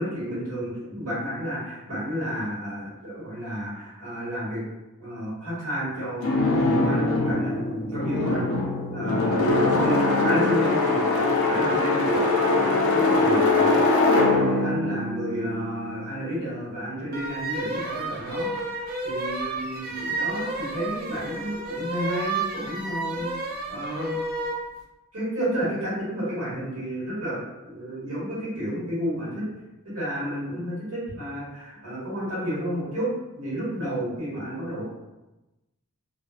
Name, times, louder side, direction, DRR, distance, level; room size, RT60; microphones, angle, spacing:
voice 1, 0.0-4.6 5.0-8.4 8.9-23.3 23.7-24.1 25.1-29.5 29.8-34.8, equal, 85° right, -9 dB, 1.4 m, -31 dB
sound 1, 6.2-16.2, left 2 dB, 65° left, 0.4 m, -22 dB
sound 2, 17.1-24.6, right 2 dB, 40° right, 0.3 m, -31 dB
2.3 x 2.3 x 2.3 m, 1.0 s
head